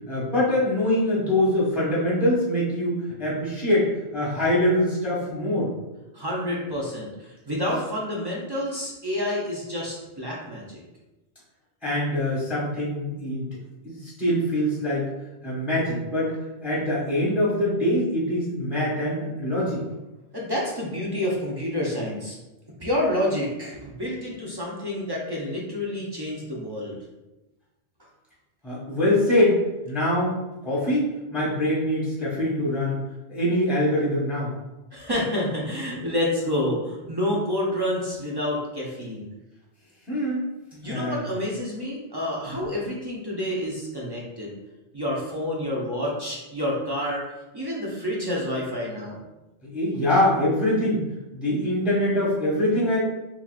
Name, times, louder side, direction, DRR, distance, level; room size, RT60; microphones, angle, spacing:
voice 1, 0.1-5.7 11.8-13.5 13.8-15.1 15.4-16.3 16.6-19.8 28.6-33.0 33.3-34.5 40.1-40.4 40.8-41.2 49.6-51.1 51.3-53.0, left 1 dB, ahead, -7 dB, 1.1 m, -24 dB
voice 2, 6.1-10.8 20.3-22.4 22.8-27.0 34.9-39.3 40.7-44.5 44.9-47.3 47.5-49.2, left 1 dB, 30° right, -4 dB, 0.6 m, -28 dB
3.9 x 2.9 x 2.4 m, 1.0 s
omnidirectional pair, 1.1 m